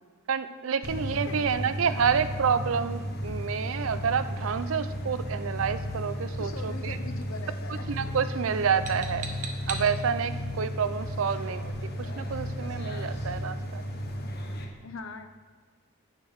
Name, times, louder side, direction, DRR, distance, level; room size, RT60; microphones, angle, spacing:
voice 1, 0.3-7.0 7.9-9.3 9.7-11.7 12.0-13.8, right 6 dB, 70° right, 12 dB, 0.5 m, -28 dB
sound 1, 0.8-14.6, equal, 45° left, 1.0 m, -34 dB
sound 2, 5.5-5.8 6.6-6.9 7.2-7.5 7.7-8.1 8.7-9.9, right 5 dB, 35° right, 0.9 m, -40 dB
voice 2, 6.4-7.9 14.8-15.3, left 4 dB, 70° left, 7 dB, 0.7 m, -41 dB
9.0 x 5.2 x 6.4 m, 1.5 s
head